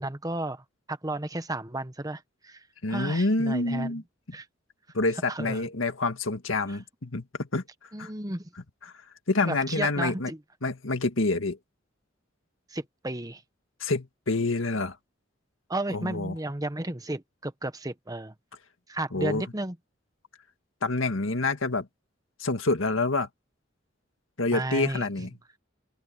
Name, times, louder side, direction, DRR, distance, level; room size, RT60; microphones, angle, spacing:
voice 1, 0.0-4.0 4.3-4.5 5.3-5.7 6.7-6.8 7.9-8.5 9.4-10.4 12.7-13.4 15.7-18.3 18.9-19.8 24.5-25.3, right 2 dB, 20° right, 1.2 m, -33 dB
voice 2, 2.8-4.0 4.9-7.6 8.0-8.1 9.3-10.3 10.6-11.6 13.8-15.0 15.9-16.3 19.1-19.4 20.8-21.9 22.4-23.3 24.4-25.3, left 2 dB, 90° left, 1.8 m, -27 dB
open air
head